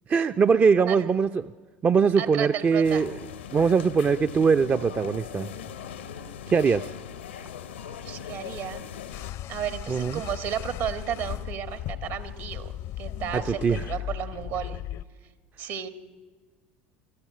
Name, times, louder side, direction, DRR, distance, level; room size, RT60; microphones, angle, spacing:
voice 1, 0.1-1.5 1.8-3.2 3.5-5.5 6.5-6.9 9.9-10.2 13.3-13.9, right 5 dB, 30° right, 9 dB, 0.5 m, -22 dB
voice 2, 2.2-3.0 8.0-8.8 9.5-12.7 13.0-14.8 15.6-15.9, right 9 dB, 60° right, 10 dB, 1.6 m, -33 dB
sound 1, 2.8-9.3, left 8 dB, 85° left, 0.9 m, -39 dB
sound 2, 9.1-15.0, left 13 dB, 55° left, 0.7 m, -36 dB
24.5 x 14.0 x 8.7 m, 1.4 s
hypercardioid pair, 70°, 6 cm